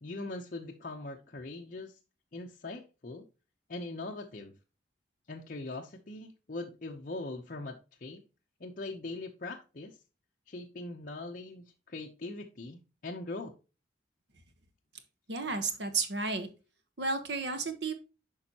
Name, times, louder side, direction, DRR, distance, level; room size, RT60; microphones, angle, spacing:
voice 1, 0.0-2.0 2.3-3.2 3.7-4.5 5.3-8.2 8.6-10.0 10.5-13.5, left 2 dB, 45° left, 0 dB, 0.7 m, -41 dB
voice 2, 15.3-16.5 17.0-17.9, right 3 dB, 65° right, 8 dB, 1.2 m, -32 dB
8.5 x 5.3 x 2.9 m, 0.31 s
head